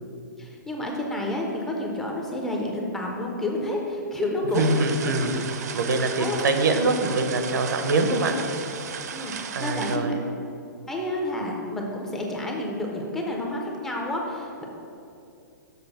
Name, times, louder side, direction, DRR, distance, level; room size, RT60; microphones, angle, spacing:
voice 1, 0.4-4.6 6.2-6.4 9.1-10.2 10.9-14.6, left 1 dB, 5° left, -1 dB, 0.4 m, -30 dB
sound 1, 4.5-10.0, right 7 dB, 55° right, 0.6 m, -35 dB
voice 2, 4.5-5.3 5.7-8.3 9.5-10.2, right 3 dB, 80° right, 6 dB, 0.9 m, -24 dB
7.0 x 4.2 x 6.7 m, 2.6 s
hypercardioid pair, 175°, 10 cm